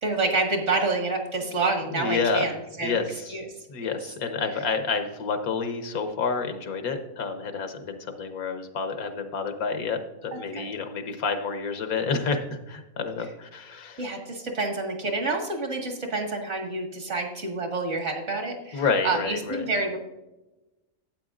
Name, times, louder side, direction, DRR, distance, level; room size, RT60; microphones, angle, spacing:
voice 1, 0.0-3.0 3.3-3.5 3.8-3.9 10.3-10.7 14.0-20.0, right 3 dB, 55° right, 3 dB, 2.0 m, -28 dB
voice 2, 1.9-2.5 2.8-3.3 3.7-14.0 18.7-19.7, left 5 dB, 85° left, 6 dB, 1.5 m, -29 dB
12.0 x 8.7 x 2.5 m, 1.0 s
omnidirectional pair, 1.5 m